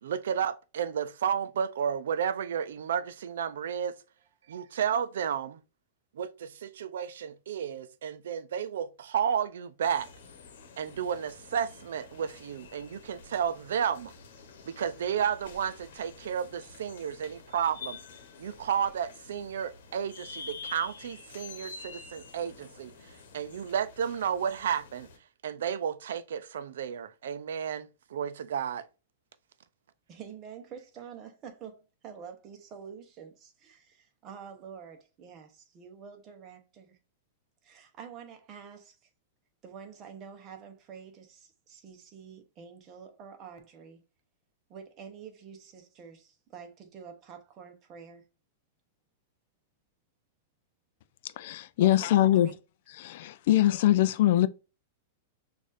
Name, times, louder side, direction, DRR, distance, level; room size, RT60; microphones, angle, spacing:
voice 1, 0.0-4.0 4.5-5.6 6.2-10.1 10.8-14.1 14.7-18.0 18.4-22.9 23.3-25.1 25.4-28.9, right 8 dB, 85° right, 0.4 m, -32 dB
sound 1, 9.8-25.2, left 5 dB, 75° left, 1.0 m, -48 dB
voice 2, 30.1-37.0 37.6-39.1 39.6-44.0 44.7-48.2 51.3-51.4 51.8-52.6, right 7 dB, 25° right, 0.9 m, -47 dB
voice 3, 51.4-52.5 53.0-54.5, left 13 dB, 55° left, 0.3 m, -23 dB
6.2 x 2.5 x 2.5 m
supercardioid pair, 160°, 0 cm